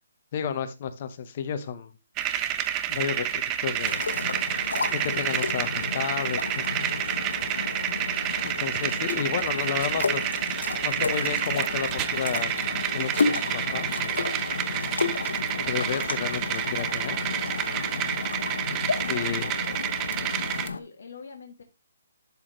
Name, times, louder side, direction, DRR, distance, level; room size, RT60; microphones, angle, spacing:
voice 1, 0.3-1.9 2.9-4.0 4.9-6.9 8.4-12.5 12.9-14.3 15.5-17.2 19.1-19.5, left 8 dB, 35° left, 1.0 m, -32 dB
sound 1, 2.2-20.7, right 11 dB, 15° right, 0.5 m, -29 dB
sound 2, 3.8-20.8, left 4 dB, 90° left, 1.1 m, -32 dB
voice 2, 18.9-19.8 20.2-21.6, left 5 dB, 65° left, 1.5 m, -45 dB
12.0 x 4.3 x 3.1 m
hypercardioid pair, 170°, 0 cm